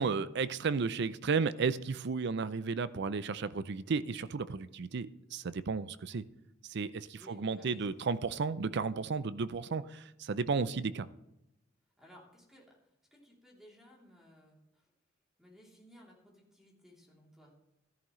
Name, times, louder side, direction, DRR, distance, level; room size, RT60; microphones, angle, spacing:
voice 1, 0.0-6.2 6.7-11.1, right 5 dB, 60° right, 15 dB, 0.5 m, -33 dB
voice 2, 7.1-8.1 12.0-12.8 13.1-14.9 15.4-17.5, equal, ahead, -3 dB, 3.1 m, -59 dB
13.5 x 11.0 x 3.2 m, 0.87 s
head